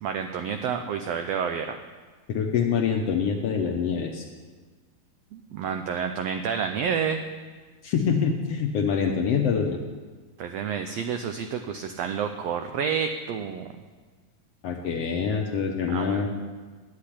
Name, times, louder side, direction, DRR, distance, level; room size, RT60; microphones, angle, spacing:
voice 1, 0.0-1.8 5.3-7.2 10.4-13.7 15.9-16.3, right 7 dB, 90° right, 6 dB, 1.4 m, -29 dB
voice 2, 2.3-4.2 7.8-9.8 14.6-16.3, left 6 dB, 70° left, 3 dB, 1.6 m, -25 dB
10.5 x 8.6 x 10.0 m, 1.4 s
omnidirectional pair, 3.7 m